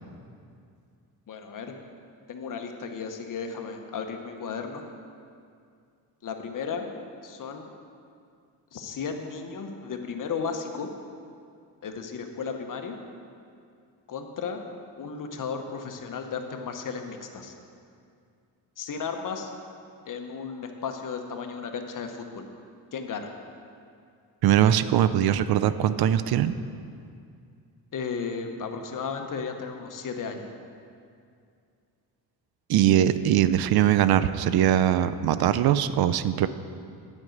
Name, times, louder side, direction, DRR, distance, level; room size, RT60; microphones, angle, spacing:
voice 1, 1.3-1.8 2.3-4.8 6.2-6.9 7.2-7.7 8.7-10.9 11.8-13.0 14.1-14.6 15.0-17.5 18.8-19.5 20.1-22.5 22.9-23.3 27.9-30.6, left 5 dB, 50° left, 4 dB, 1.0 m, -34 dB
voice 2, 24.4-26.5 32.7-36.5, right 11 dB, 65° right, 13 dB, 0.5 m, -21 dB
9.7 x 5.1 x 7.7 m, 2.4 s
cardioid pair, 95°, 40 cm